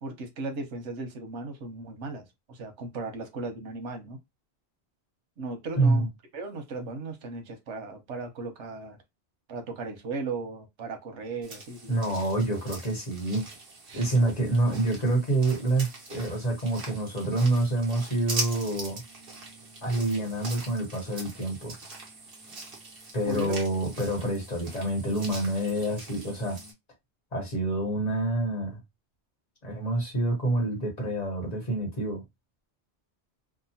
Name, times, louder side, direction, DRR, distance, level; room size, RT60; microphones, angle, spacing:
voice 1, 0.0-4.2 5.4-6.1 6.3-9.0 9.5-12.0 13.9-14.3 14.7-14.8 23.3-23.5, right 3 dB, 90° right, 1.1 m, -36 dB
voice 2, 5.8-6.1 11.9-13.4 13.9-19.0 19.8-21.7 23.1-26.6 27.3-28.8 29.6-32.2, right 2 dB, 40° left, 1.1 m, -27 dB
sound 1, 11.4-26.7, right 2 dB, 55° right, 1.1 m, -42 dB
2.9 x 2.2 x 2.7 m
omnidirectional pair, 1.2 m